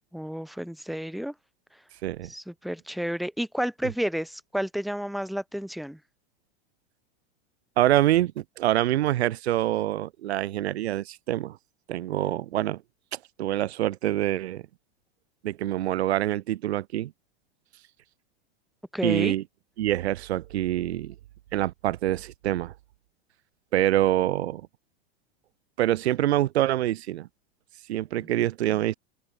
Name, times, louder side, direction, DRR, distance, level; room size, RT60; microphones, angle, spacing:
voice 1, 0.1-1.3 2.3-6.0 18.9-19.3, equal, ahead, 1.0 m, -31 dB
voice 2, 7.8-11.6 11.9-12.8 13.1-14.6 15.4-17.1 19.0-19.4 19.8-21.1 21.5-22.7 23.7-24.6 25.8-27.3 27.9-28.9, right 14 dB, 85° right, 1.1 m, -25 dB
open air
supercardioid pair, 125°, 32 cm